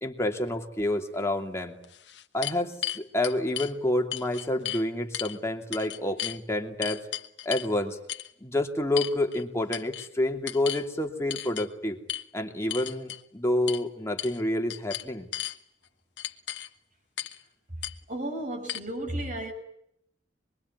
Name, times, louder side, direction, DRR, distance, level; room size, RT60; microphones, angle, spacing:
voice 1, 0.0-1.8 2.3-7.0 7.4-8.0 8.4-12.0 12.3-15.3, left 1 dB, 15° left, 3 dB, 2.8 m, -28 dB
sound 1, 1.2-1.3 1.8-3.7 4.1-4.8 5.1-5.4 5.7-6.4 6.8-7.7 8.1-8.3 9.0-9.4 9.7-10.1 10.5-10.8 11.3-11.7 12.1-12.2 12.7-13.2 13.7-13.8 14.2-14.4 14.7-15.6 16.2-16.7 17.2-17.4 17.8-17.9 18.7-18.8, left 12 dB, 70° left, 1.4 m, -34 dB
voice 2, 18.1-19.5, right 1 dB, 45° right, 5 dB, 7.0 m, -33 dB
26.0 x 22.5 x 9.6 m, 0.74 s
head